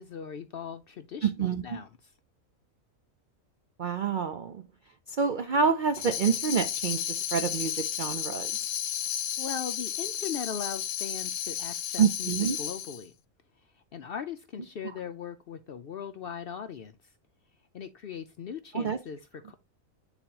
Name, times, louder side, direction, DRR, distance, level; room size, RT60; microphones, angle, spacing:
voice 1, 0.0-1.9 9.4-13.1 13.7-16.9 17.7-19.5, left 7 dB, 65° left, 0.6 m, -39 dB
voice 2, 1.2-1.8 3.8-4.6 5.1-8.5 12.0-12.6 18.7-19.0, right 6 dB, 65° right, 0.4 m, -27 dB
Tambourine, 5.9-13.0, left 10 dB, 85° left, 1.0 m, -33 dB
8.5 x 4.0 x 2.9 m
omnidirectional pair, 1.4 m